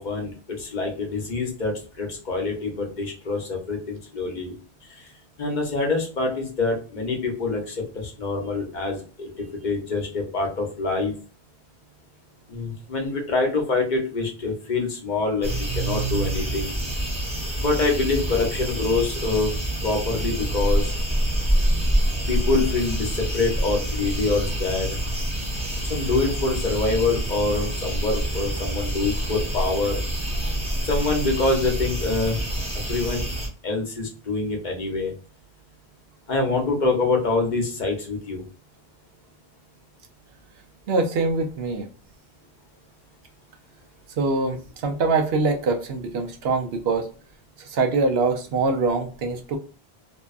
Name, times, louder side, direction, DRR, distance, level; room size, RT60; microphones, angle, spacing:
voice 1, 0.0-4.5 5.0-5.1 5.4-11.1 12.5-16.7 17.6-19.5 19.8-20.9 22.3-25.0 25.9-30.0 30.8-32.4 32.9-33.2 33.6-35.1 36.3-38.4, left 3 dB, 50° left, 1 dB, 0.9 m, -25 dB
sound 1, 15.4-33.5, right 1 dB, 5° right, 0.8 m, -26 dB
voice 2, 40.9-41.9 44.2-47.1 47.6-49.6, right 3 dB, 80° right, 5 dB, 0.8 m, -24 dB
2.6 x 2.2 x 2.3 m, 0.38 s
omnidirectional pair, 1.0 m